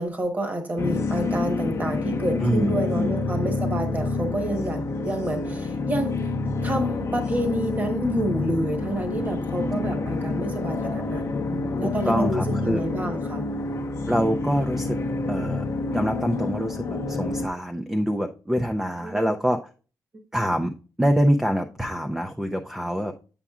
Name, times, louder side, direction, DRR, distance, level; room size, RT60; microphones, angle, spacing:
voice 1, 0.0-6.3 6.6-13.4 19.0-19.3 20.1-20.2, right 1 dB, 25° right, 5 dB, 1.1 m, -29 dB
sound 1, 0.8-17.5, left 3 dB, 40° left, 0.6 m, -28 dB
voice 2, 2.4-3.2 11.8-12.8 14.1-15.0 15.3-15.6 15.9-19.6 20.3-23.1, equal, 5° right, 4 dB, 0.4 m, -25 dB
8.8 x 7.0 x 2.4 m, 0.35 s
wide cardioid pair, 175°, 7 cm